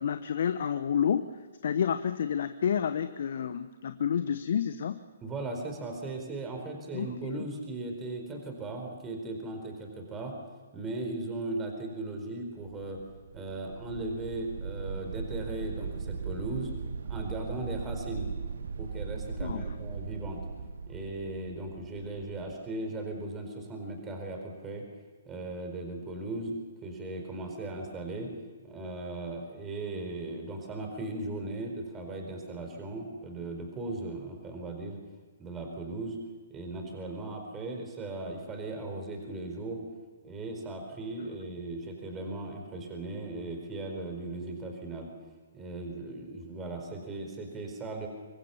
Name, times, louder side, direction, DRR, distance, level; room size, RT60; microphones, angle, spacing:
voice 1, 0.0-1.3 1.6-5.0 6.9-7.5 19.4-19.7, left 8 dB, 55° left, 11 dB, 0.9 m, -30 dB
voice 2, 5.2-10.3 10.7-13.0 13.3-16.7 17.1-18.3 18.8-20.4 20.9-24.8 25.3-28.3 28.6-35.0 35.4-36.2 36.5-39.8 40.2-45.1 45.5-48.1, right 2 dB, 15° right, 3 dB, 4.4 m, -37 dB
sound 1, 12.6-22.5, right 5 dB, 65° right, 1.4 m, -38 dB
25.0 x 24.0 x 7.1 m, 1.3 s
figure-of-eight pair, 125°, 0 cm